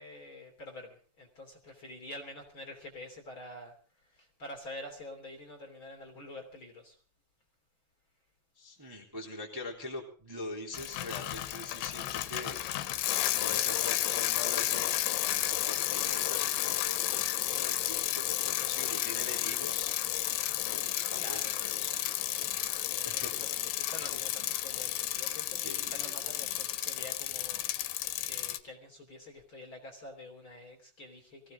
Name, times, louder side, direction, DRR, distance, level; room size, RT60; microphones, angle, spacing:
voice 1, 0.0-7.0 21.1-21.5 22.9-31.5, left 1 dB, 30° left, 2 dB, 3.4 m, -47 dB
voice 2, 8.6-12.6 13.3-19.9 20.7-22.1 23.0-23.3 25.1-25.2 25.6-26.1, left 2 dB, 5° right, -1 dB, 2.9 m, -43 dB
Bicycle, 10.7-28.6, left 14 dB, 90° left, 3.2 m, -32 dB
22.5 x 17.0 x 3.8 m, 0.39 s
omnidirectional pair, 4.8 m